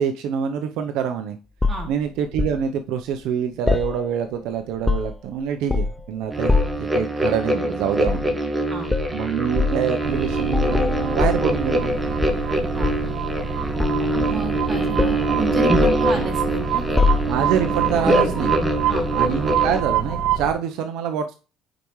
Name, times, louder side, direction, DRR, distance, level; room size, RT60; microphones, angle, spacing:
voice 1, 0.0-1.4 1.9-8.3 9.1-12.0 14.0-14.5 16.2-16.3 17.3-18.6 19.1-21.3, right 8 dB, 75° right, 7 dB, 0.7 m, -26 dB
sound 1, 1.6-2.6 3.7-4.4 4.7-5.3 5.7-6.1 6.5-6.9 8.0-8.3 8.9-9.1 9.6-9.8 10.5-11.9 12.2-13.2 13.8-14.7 15.0-15.3 15.7-16.5 17.0-17.6 18.5-18.7, left 3 dB, 10° left, 0.4 m, -23 dB
sound 2, 6.3-19.8, right 1 dB, 10° right, 1.3 m, -24 dB
sound 3, 10.0-20.5, right 7 dB, 55° right, 1.6 m, -26 dB
voice 2, 12.5-12.9 14.1-17.0 18.9-19.1, right 2 dB, 25° right, 0 dB, 3.0 m, -32 dB
8.9 x 4.9 x 3.1 m, 0.33 s
cardioid pair, 100°, 0 cm